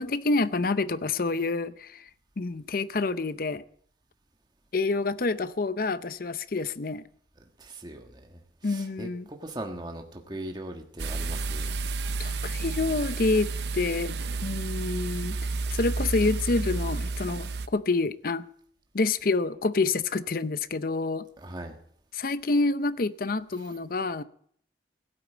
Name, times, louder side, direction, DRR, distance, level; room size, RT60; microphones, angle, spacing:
voice 1, 0.0-2.0 2.4-3.6 4.7-7.0 8.6-9.3 12.2-18.5 18.9-21.3 22.1-24.2, left 3 dB, 50° left, 0.6 m, -28 dB
voice 2, 7.6-11.7 21.4-21.8, right 1 dB, 25° right, 1.4 m, -40 dB
sound 1, 11.0-17.7, right 3 dB, 70° right, 0.7 m, -31 dB
16.5 x 8.7 x 8.9 m
head